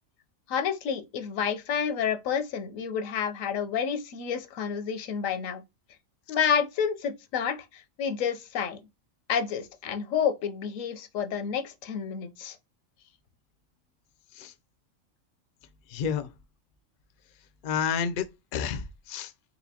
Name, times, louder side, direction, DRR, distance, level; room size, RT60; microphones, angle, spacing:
voice 1, 0.5-5.6 6.3-8.8 9.3-12.6, left 7 dB, 85° left, 1.0 m, -29 dB
voice 2, 15.9-16.3 17.6-18.3 18.5-19.3, left 7 dB, 65° left, 0.5 m, -30 dB
4.2 x 2.4 x 2.7 m
omnidirectional pair, 1.4 m